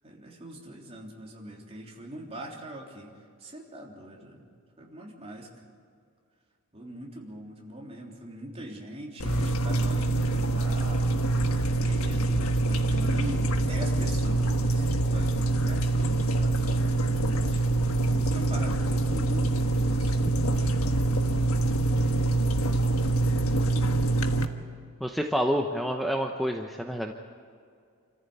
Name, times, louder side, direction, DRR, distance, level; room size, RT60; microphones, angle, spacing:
voice 1, 0.0-3.1 3.4-4.5 4.8-5.5 6.7-11.0 11.8-17.6 18.1-20.8, right 1 dB, 30° right, -1 dB, 3.3 m, -42 dB
sound 1, 9.2-24.5, right 2 dB, 80° left, 1.4 m, -25 dB
voice 2, 25.0-27.1, equal, ahead, 2 dB, 0.9 m, -28 dB
27.5 x 14.5 x 8.4 m, 2.2 s
head